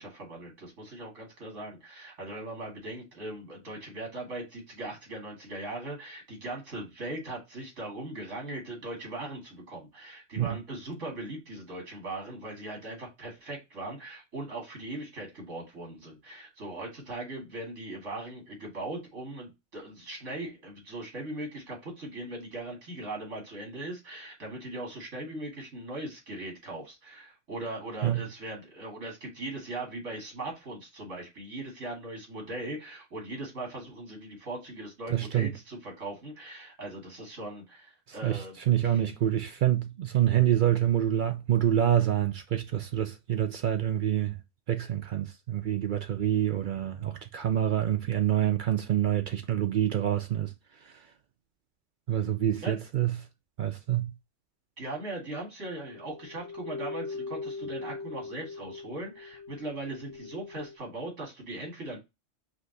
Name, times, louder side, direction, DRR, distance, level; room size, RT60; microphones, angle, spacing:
voice 1, 0.0-38.6 38.8-38.9 52.6-52.8 54.8-62.0, right 2 dB, 80° right, 2.3 m, -39 dB
voice 2, 35.1-35.5 38.1-44.4 44.7-50.5 50.8-51.1 52.1-53.1 53.6-54.1, right 11 dB, 60° right, 0.5 m, -27 dB
sound 1, 55.7-60.8, left 4 dB, 85° left, 0.9 m, -41 dB
5.1 x 2.4 x 3.8 m
omnidirectional pair, 1.2 m